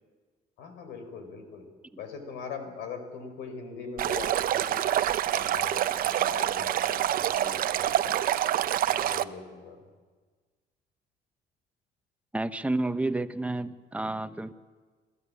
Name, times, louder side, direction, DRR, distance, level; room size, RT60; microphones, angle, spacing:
voice 1, 0.6-1.6 2.0-5.0 5.3-8.2 8.9-9.8, left 5 dB, 90° left, 7 dB, 4.1 m, -41 dB
Stream, 4.0-9.2, right 11 dB, 60° right, 0.8 m, -26 dB
voice 2, 12.3-14.5, right 2 dB, 10° right, 11 dB, 1.0 m, -30 dB
27.0 x 15.0 x 8.5 m, 1.5 s
cardioid pair, 110°, 17 cm